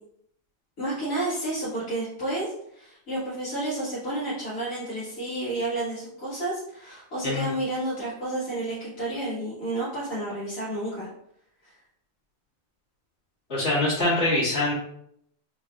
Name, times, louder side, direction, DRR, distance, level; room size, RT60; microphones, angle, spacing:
voice 1, 0.8-11.1 11.6-11.7, right 1 dB, 75° left, -10 dB, 1.8 m, -31 dB
voice 2, 13.5-14.7, left 2 dB, 50° left, -14 dB, 2.0 m, -24 dB
4.8 x 3.3 x 2.3 m, 0.72 s
omnidirectional pair, 1.4 m